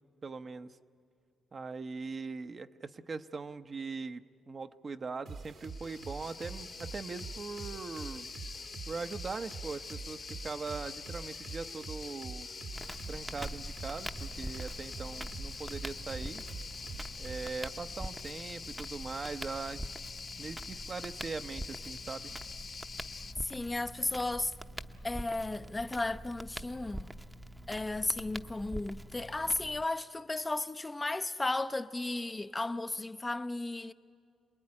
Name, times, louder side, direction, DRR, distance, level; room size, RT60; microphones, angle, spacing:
voice 1, 0.2-0.8 1.5-8.3 8.9-12.5 13.1-16.4 17.2-19.9 20.4-22.3, right 4 dB, 35° right, 0.8 m, -41 dB
sound 1, 5.3-17.6, right 4 dB, 60° right, 1.7 m, -46 dB
sound 2, 5.6-23.3, left 5 dB, 40° left, 1.0 m, -45 dB
Crackle, 12.7-29.8, right 1 dB, 10° right, 0.8 m, -44 dB
voice 2, 23.4-24.5 25.0-27.1 27.7-33.9, left 2 dB, 15° left, 0.6 m, -34 dB
27.5 x 20.0 x 9.7 m
cardioid pair, 105°, 0 cm